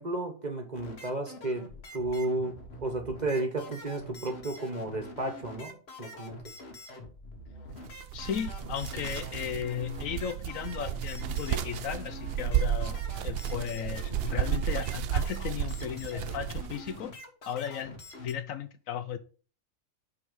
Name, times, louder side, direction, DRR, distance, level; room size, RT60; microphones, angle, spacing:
voice 1, 0.0-1.7 1.9-6.4, right 2 dB, 30° right, 1.2 m, -33 dB
sound 1, 0.7-18.3, left 1 dB, 50° left, 1.5 m, -46 dB
sound 2, 7.7-17.0, right 10 dB, 65° right, 0.6 m, -33 dB
voice 2, 8.1-13.0 13.2-17.1 17.5-19.2, left 8 dB, 70° left, 1.0 m, -35 dB
5.3 x 4.9 x 6.3 m
omnidirectional pair, 1.5 m